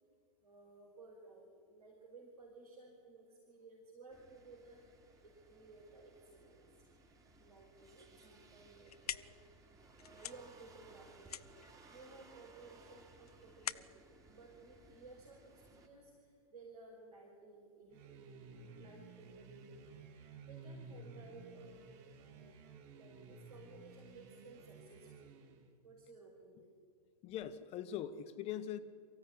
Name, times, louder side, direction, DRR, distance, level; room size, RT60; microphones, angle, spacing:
voice 1, 0.4-4.9 5.2-6.8 7.4-9.7 10.0-11.4 11.9-19.8 20.5-22.6 22.9-25.3 25.8-26.8, right 3 dB, 90° right, 5.4 m, -57 dB
sound 1, 4.1-15.9, right 3 dB, 15° right, 3.3 m, -62 dB
sound 2, 8.6-15.5, left 9 dB, 85° left, 0.7 m, -48 dB
sound 3, 17.9-25.7, right 4 dB, 45° right, 3.0 m, -54 dB
voice 2, 27.2-28.8, left 10 dB, 35° left, 1.4 m, -42 dB
23.5 x 15.5 x 10.0 m
hypercardioid pair, 115°, 19 cm